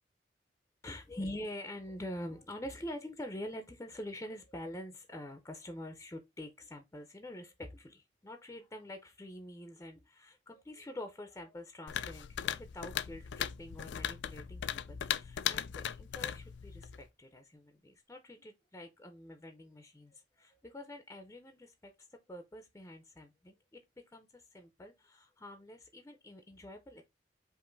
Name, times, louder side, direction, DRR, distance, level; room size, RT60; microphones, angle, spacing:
voice 1, 0.8-23.8 24.1-27.0, left 1 dB, 15° left, 0.5 m, -46 dB
sound 1, 11.9-17.1, left 10 dB, 80° left, 0.4 m, -38 dB
5.3 x 2.5 x 3.8 m
head